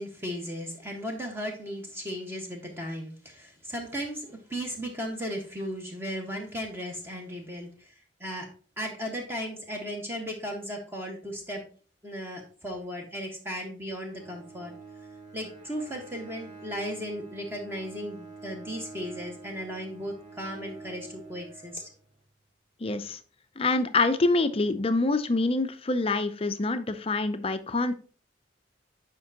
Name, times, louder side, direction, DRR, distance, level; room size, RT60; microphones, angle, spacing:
voice 1, 0.0-7.9 8.2-8.5 8.8-11.6 12.0-14.7 15.3-21.9, equal, 15° right, 1 dB, 1.4 m, -36 dB
Bowed string instrument, 14.1-22.3, right 4 dB, 45° right, 2.2 m, -47 dB
voice 2, 22.8-23.2 23.6-27.9, left 3 dB, 30° left, 11 dB, 0.5 m, -26 dB
9.0 x 5.2 x 2.9 m, 0.41 s
head